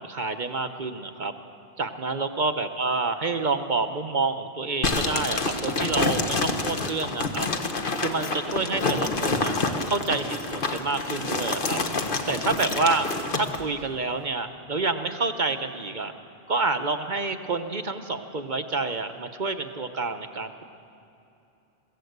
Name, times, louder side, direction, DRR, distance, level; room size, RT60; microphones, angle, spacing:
voice 1, 0.0-1.3 1.8-7.5 8.0-9.5 9.9-11.8 12.3-13.1 13.3-16.1 16.5-20.6, right 3 dB, 45° right, 8 dB, 1.0 m, -28 dB
sound 1, 4.8-13.6, left 3 dB, 55° left, 1.5 m, -27 dB
22.5 x 16.0 x 8.0 m, 2.8 s
omnidirectional pair, 1.1 m